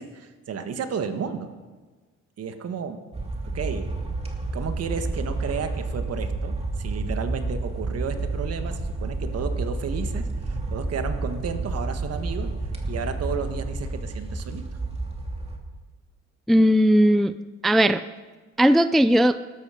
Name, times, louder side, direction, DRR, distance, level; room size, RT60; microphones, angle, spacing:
voice 1, 0.0-1.5 2.4-3.0 3.5-3.9 4.5-12.5 12.9-14.6, right 6 dB, 55° right, 8 dB, 1.5 m, -32 dB
sound 1, 3.1-15.6, right 2 dB, 20° right, 2.4 m, -30 dB
voice 2, 16.5-17.4 17.6-18.0 18.6-19.4, equal, ahead, 12 dB, 0.4 m, -17 dB
19.0 x 13.0 x 5.0 m, 1.3 s
cardioid pair, 95°, 29 cm